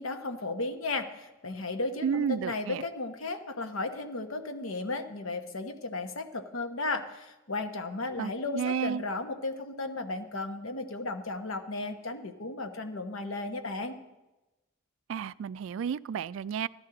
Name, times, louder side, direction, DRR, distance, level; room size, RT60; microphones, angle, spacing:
voice 1, 0.0-14.0, left 3 dB, 80° left, 7 dB, 1.0 m, -35 dB
voice 2, 2.0-2.8 8.2-9.0 15.1-16.7, right 7 dB, 70° right, 18 dB, 0.3 m, -32 dB
14.5 x 11.5 x 3.8 m, 1.0 s
head